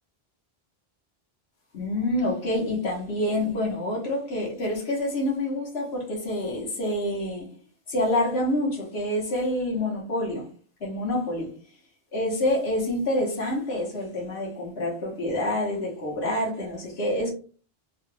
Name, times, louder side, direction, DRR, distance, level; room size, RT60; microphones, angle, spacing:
voice 1, 1.7-7.5 7.9-10.5 10.8-11.5 12.1-17.3, left 1 dB, 80° left, 1.3 m, -27 dB
3.0 x 2.2 x 3.1 m
omnidirectional pair, 1.1 m